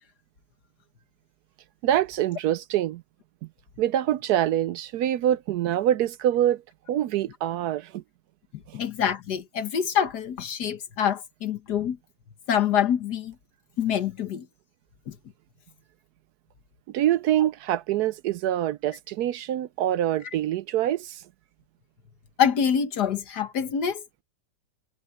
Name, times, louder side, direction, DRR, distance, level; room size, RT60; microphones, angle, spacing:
voice 1, 1.8-3.0 3.8-6.6 6.9-8.0 16.9-21.2, right 12 dB, 70° right, 1.0 m, -25 dB
voice 2, 8.7-12.0 12.5-13.3 13.8-14.5 15.1-15.2 22.4-24.2, left 8 dB, 70° left, 1.8 m, -26 dB
omnidirectional pair, 1.9 m